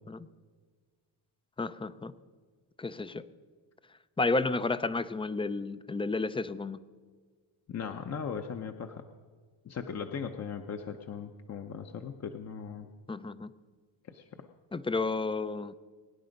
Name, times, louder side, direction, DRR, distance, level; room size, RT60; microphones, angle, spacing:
voice 1, 1.6-2.1 2.8-3.2 4.2-6.8 13.1-13.5 14.7-15.7, left 3 dB, 10° left, 14 dB, 0.4 m, -31 dB
voice 2, 7.7-9.0 9.6-12.9 14.1-14.5, left 6 dB, 35° left, 5 dB, 0.8 m, -38 dB
22.5 x 9.9 x 5.2 m, 1.5 s
cardioid pair, 120°, 47 cm